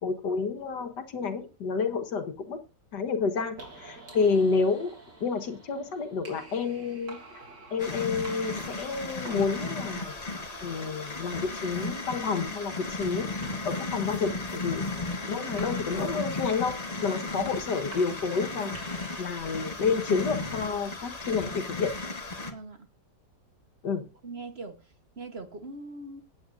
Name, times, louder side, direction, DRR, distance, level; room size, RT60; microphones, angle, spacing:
voice 1, 0.0-2.6 2.9-4.9 5.2-7.2 7.7-10.2 10.6-14.9 15.3-21.9 23.8-24.0, left 5 dB, 75° left, 2.0 m, -30 dB
sound 1, 3.5-21.2, right 2 dB, 75° right, 3.7 m, -50 dB
sound 2, 7.8-22.5, left 3 dB, 25° left, 1.3 m, -35 dB
voice 2, 15.1-15.5 22.4-22.9 24.2-26.2, right 3 dB, 40° right, 1.3 m, -42 dB
16.0 x 9.3 x 2.6 m
omnidirectional pair, 1.9 m